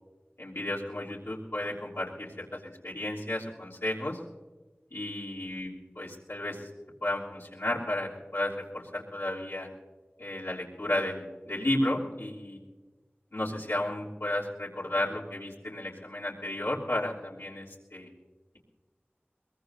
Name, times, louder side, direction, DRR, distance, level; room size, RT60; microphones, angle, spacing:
voice 1, 0.4-4.2 4.9-6.7 7.0-9.7 10.2-12.6 13.3-18.1, left 1 dB, 75° left, -6 dB, 3.2 m, -33 dB
22.0 x 22.0 x 2.7 m, 1.3 s
wide cardioid pair, 40°, 4 cm